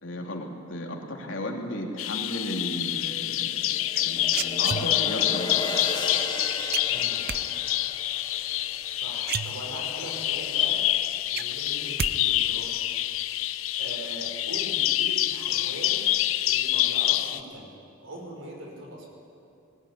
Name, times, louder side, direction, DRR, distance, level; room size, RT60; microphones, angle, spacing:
voice 1, 0.0-3.7 4.0-5.6, left 1 dB, 70° left, 0 dB, 3.1 m, -35 dB
Bird vocalization bird call bird song, 2.0-17.4, left 14 dB, 85° left, 0.6 m, -27 dB
sound 1, 3.2-9.5, left 3 dB, 25° left, 2.7 m, -35 dB
sound 2, 3.9-5.3 6.7-7.4 8.8-8.9 9.2-10.1 10.5-10.6 10.9-12.1 12.4-12.9, right 7 dB, 45° right, 0.5 m, -32 dB
voice 2, 6.9-7.5 8.9-10.9 11.3-12.8 13.7-16.1 16.5-19.1, right 1 dB, 80° right, 0 dB, 5.4 m, -41 dB
20.5 x 18.5 x 9.9 m, 2.6 s
head